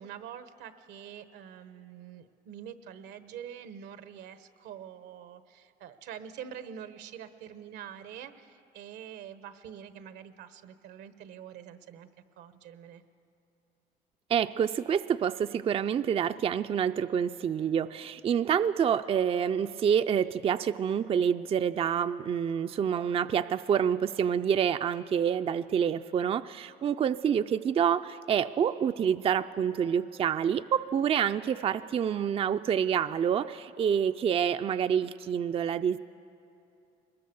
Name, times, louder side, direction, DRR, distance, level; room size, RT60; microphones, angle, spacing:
voice 1, 0.0-12.1 12.4-13.0, right 9 dB, 85° right, 11 dB, 1.1 m, -45 dB
voice 2, 14.3-36.0, right 8 dB, 35° right, 10 dB, 0.4 m, -27 dB
21.5 x 20.5 x 6.9 m, 2.7 s
cardioid pair, 110°, 17 cm